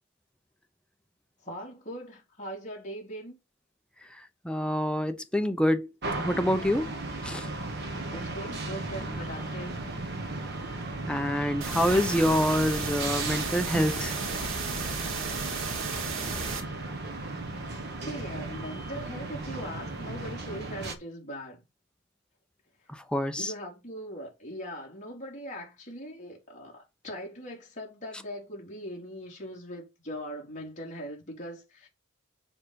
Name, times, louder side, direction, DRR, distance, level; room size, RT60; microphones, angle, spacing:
voice 1, 1.4-3.4 8.1-9.9 18.0-21.6 23.4-31.9, equal, 35° left, 3.8 m, -40 dB
voice 2, 4.4-5.9 6.2-6.9 7.2-7.5 11.1-14.1 22.9-23.5, equal, 5° left, 0.7 m, -26 dB
sound 1, 6.0-21.0, right 2 dB, 55° right, 1.6 m, -36 dB
sound 2, 11.6-16.6, right 4 dB, 80° right, 2.2 m, -34 dB
7.2 x 5.0 x 5.1 m
head